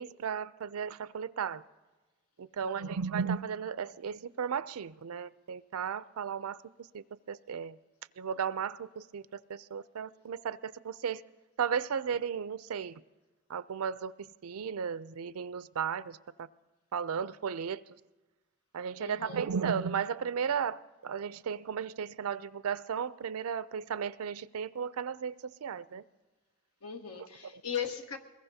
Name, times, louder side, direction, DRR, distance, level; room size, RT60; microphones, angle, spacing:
voice 1, 0.0-1.6 2.4-6.6 6.9-7.8 8.2-11.2 11.6-13.0 13.5-14.1 14.4-16.5 16.9-17.8 18.7-26.0, right 7 dB, 90° right, 0.4 m, -35 dB
voice 2, 2.6-3.0 19.0-19.4 26.8-28.2, left 8 dB, 90° left, 1.2 m, -38 dB
23.0 x 21.0 x 2.8 m
head